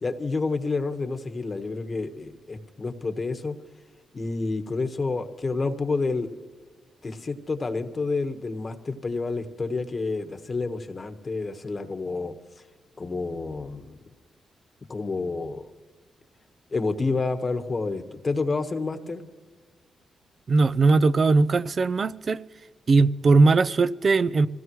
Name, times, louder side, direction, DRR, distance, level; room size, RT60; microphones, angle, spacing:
voice 1, 0.0-3.5 4.1-6.3 7.0-12.3 13.0-14.0 14.9-15.7 16.7-19.2, left 3 dB, 40° left, 1.4 m, -29 dB
voice 2, 20.5-22.4 22.9-24.5, right 3 dB, 45° right, 0.5 m, -19 dB
25.0 x 17.0 x 3.1 m
cardioid pair, 75°, 0 cm